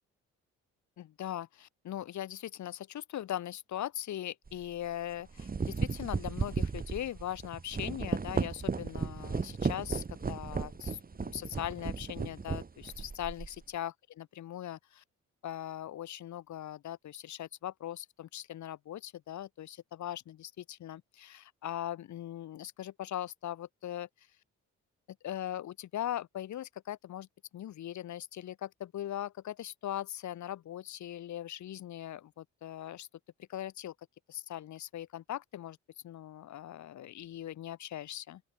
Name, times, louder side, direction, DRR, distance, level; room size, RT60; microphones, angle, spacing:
voice 1, 1.0-15.0 15.4-24.1 25.2-27.3 27.5-33.1 33.5-33.9 34.3-35.8 36.0-38.4, left 12 dB, 70° left, 2.0 m, -40 dB
sound 1, 4.5-4.7 5.2-13.6, right 4 dB, 30° right, 2.7 m, -35 dB
open air
cardioid pair, 90°, 30 cm